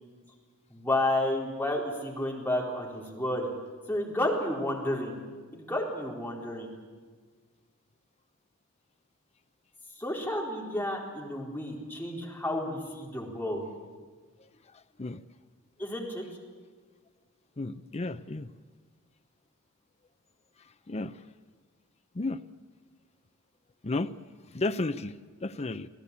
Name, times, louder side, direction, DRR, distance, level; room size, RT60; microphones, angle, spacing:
voice 1, 0.7-3.5 3.9-5.2 5.5-6.7 10.0-13.7 15.8-16.2, left 1 dB, 10° left, 4.2 m, -31 dB
voice 2, 17.6-18.5 20.9-21.1 22.1-22.4 23.8-24.1 24.5-25.1 25.4-25.9, left 2 dB, 30° left, 0.6 m, -32 dB
26.5 x 17.0 x 8.4 m
head